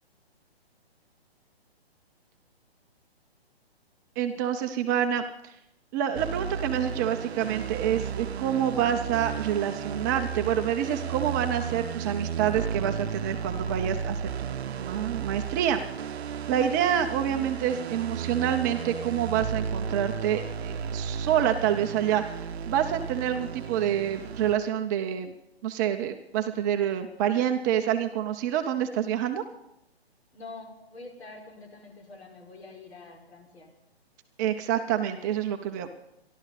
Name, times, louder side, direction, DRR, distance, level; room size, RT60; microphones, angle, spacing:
voice 1, 4.2-5.6 5.9-25.3 25.6-29.4 34.4-35.9, right 9 dB, 20° right, 6 dB, 0.5 m, -27 dB
sound 1, 6.1-24.6, right 7 dB, 75° right, 0.6 m, -34 dB
voice 2, 30.3-33.7, left 3 dB, 75° left, 0 dB, 4.9 m, -46 dB
26.0 x 12.0 x 4.1 m, 0.85 s
hypercardioid pair, 145°, 32 cm